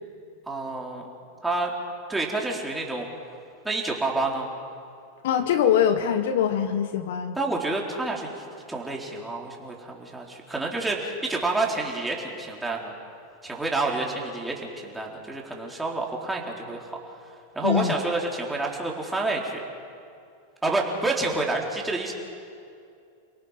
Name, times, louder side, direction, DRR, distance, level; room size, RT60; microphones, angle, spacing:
voice 1, 0.5-1.1 1.4-1.7 2.1-3.1 3.6-4.5 7.4-12.9 13.4-17.2 17.5-19.6 20.6-22.1, right 2 dB, 10° right, -2 dB, 3.9 m, -29 dB
voice 2, 5.2-7.4 17.6-17.9, left 9 dB, 70° left, 9 dB, 1.5 m, -23 dB
29.5 x 18.0 x 5.8 m, 2.5 s
hypercardioid pair, 110°, 0 cm